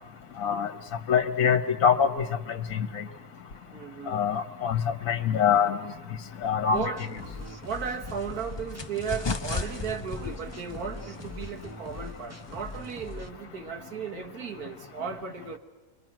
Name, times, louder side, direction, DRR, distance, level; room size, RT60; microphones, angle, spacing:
voice 1, 0.4-0.7 1.1-2.1 2.7-3.0 4.1-4.8 5.1-5.8 6.4-6.9, left 7 dB, 65° left, 1.5 m, -24 dB
voice 2, 3.7-4.2 6.7-15.6, right 6 dB, 80° right, 1.9 m, -36 dB
sound 1, 6.7-13.3, left 2 dB, 15° right, 0.8 m, -43 dB
sound 2, 7.2-13.3, left 4 dB, 35° left, 0.4 m, -38 dB
28.0 x 22.0 x 6.1 m
omnidirectional pair, 1.6 m